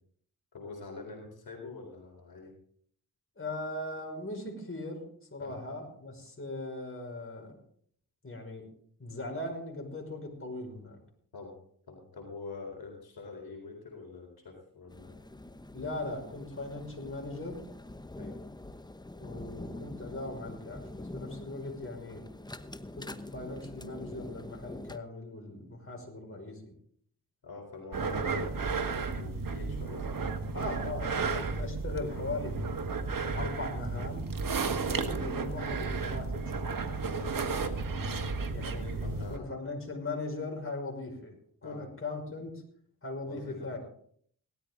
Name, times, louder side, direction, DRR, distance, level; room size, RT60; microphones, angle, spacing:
voice 1, 0.5-2.5 5.4-5.6 11.3-11.6 11.9-15.2 18.2-18.4 27.4-30.2 37.5-37.8 38.8-39.5 41.6-41.8 43.2-43.8, left 3 dB, 70° left, 1 dB, 4.0 m, -45 dB
voice 2, 3.4-5.0 5.3-7.5 8.2-8.7 9.0-11.0 15.7-17.6 19.2-22.2 22.9-26.7 30.5-32.6 33.3-34.3 34.6-37.5 38.5-41.3 41.6-42.6 43.0-43.8, left 2 dB, 35° left, 1 dB, 5.7 m, -39 dB
sound 1, 14.9-25.0, left 1 dB, 10° left, 0.9 m, -45 dB
sound 2, 27.9-39.4, right 4 dB, 60° right, 1.6 m, -33 dB
18.0 x 13.0 x 3.8 m, 0.62 s
cardioid pair, 50°, 38 cm